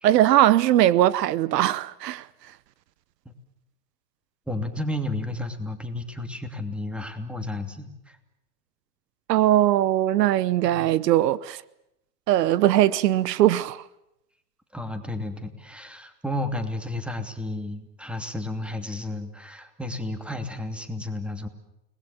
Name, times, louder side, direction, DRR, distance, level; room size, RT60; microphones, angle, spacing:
voice 1, 0.0-2.2 9.3-11.6 12.3-13.8, right 13 dB, 80° right, 1.0 m, -20 dB
voice 2, 4.5-8.2 10.6-10.9 14.7-21.5, left 1 dB, ahead, 2.8 m, -32 dB
30.0 x 20.5 x 7.3 m
hypercardioid pair, 125°, 48 cm